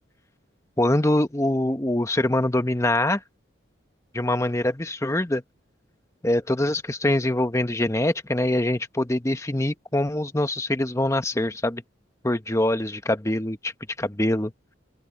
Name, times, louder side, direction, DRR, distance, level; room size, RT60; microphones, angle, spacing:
voice 1, 0.8-3.2 4.1-5.4 6.2-11.8 12.2-13.7 14.0-14.5, left 1 dB, 15° left, 1.0 m, -24 dB
open air
head